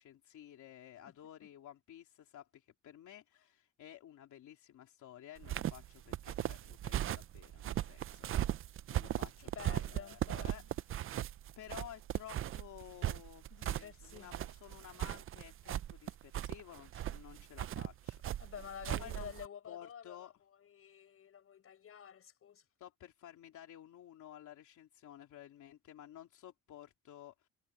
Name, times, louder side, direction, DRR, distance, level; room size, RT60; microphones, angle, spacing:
voice 1, 0.0-8.3 8.9-10.6 11.6-18.5 19.0-19.3 19.7-20.3 22.8-27.5, left 11 dB, 70° left, 3.2 m, -54 dB
sound 1, 5.4-19.5, right 12 dB, 45° right, 0.4 m, -38 dB
voice 2, 9.4-10.8 13.5-14.3 18.4-20.3 20.6-22.6, left 8 dB, 45° left, 7.1 m, -50 dB
cardioid pair, 175°, 31 cm